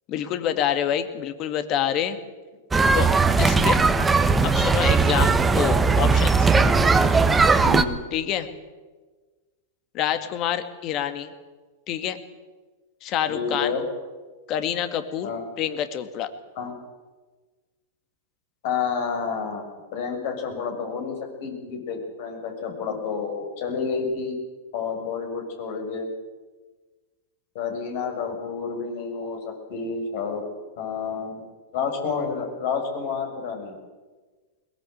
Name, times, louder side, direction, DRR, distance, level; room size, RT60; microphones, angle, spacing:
voice 1, 0.1-2.2 2.9-3.1 3.4-3.8 4.4-6.5 8.1-8.5 9.9-11.3 11.9-12.2 13.0-13.7 14.5-15.3 15.6-16.3, left 10 dB, 40° left, 10 dB, 2.2 m, -27 dB
sound 1, 2.7-7.8, right 4 dB, 15° right, 1.4 m, -18 dB
voice 2, 7.5-8.0 13.3-13.8 15.2-15.5 16.6-16.7 18.6-24.3 24.7-26.1 27.5-30.4 30.8-31.4 31.7-33.8, left 5 dB, 55° left, 3 dB, 6.8 m, -29 dB
21.5 x 20.5 x 8.1 m, 1.3 s
hypercardioid pair, 100°, 0 cm